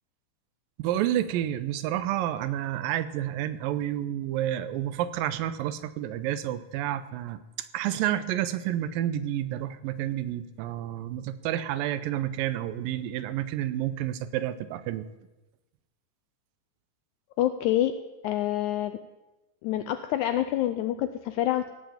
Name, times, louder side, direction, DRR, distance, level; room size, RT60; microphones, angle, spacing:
voice 1, 0.8-15.1, right 12 dB, 90° right, 13 dB, 2.4 m, -30 dB
voice 2, 17.4-17.9 18.2-19.0 19.6-21.7, left 13 dB, 85° left, 9 dB, 1.7 m, -27 dB
17.0 x 5.7 x 8.5 m, 1.1 s
omnidirectional pair, 4.0 m